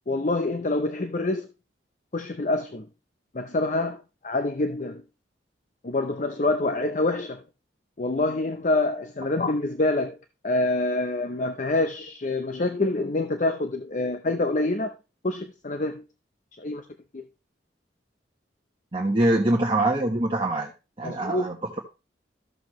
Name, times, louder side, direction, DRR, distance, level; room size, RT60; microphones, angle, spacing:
voice 1, 0.1-1.5 2.1-2.9 3.3-5.0 5.8-7.4 8.0-10.2 10.4-14.9 15.2-16.0 16.6-16.9 17.1-17.2 21.0-21.5, left 2 dB, 40° left, 0.6 m, -26 dB
voice 2, 18.9-20.7 21.0-21.8, right 1 dB, 30° right, 1.2 m, -24 dB
13.0 x 6.9 x 3.1 m
head